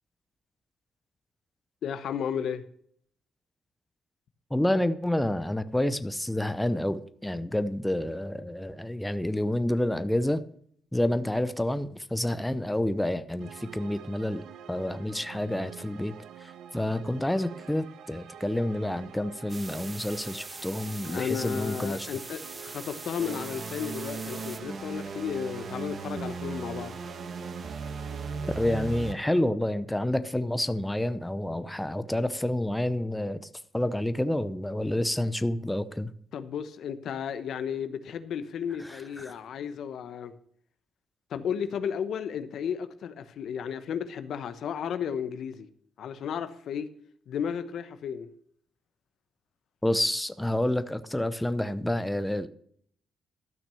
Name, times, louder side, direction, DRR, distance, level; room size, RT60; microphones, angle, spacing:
voice 1, 1.8-2.6 21.0-27.0 36.3-40.3 41.3-45.7 46.0-46.9 47.3-48.3, left 8 dB, 70° left, 1.0 m, -33 dB
voice 2, 4.5-10.4 10.9-22.1 28.5-33.4 33.7-36.1 38.8-39.3 49.8-52.5, left 1 dB, 5° left, 0.8 m, -29 dB
sound 1, 13.4-29.4, right 9 dB, 80° right, 0.9 m, -47 dB
sound 2, 19.5-24.6, right 3 dB, 25° right, 0.7 m, -43 dB
sound 3, 23.2-29.1, right 4 dB, 45° right, 1.3 m, -37 dB
13.5 x 6.0 x 6.9 m
cardioid pair, 90°, 0 cm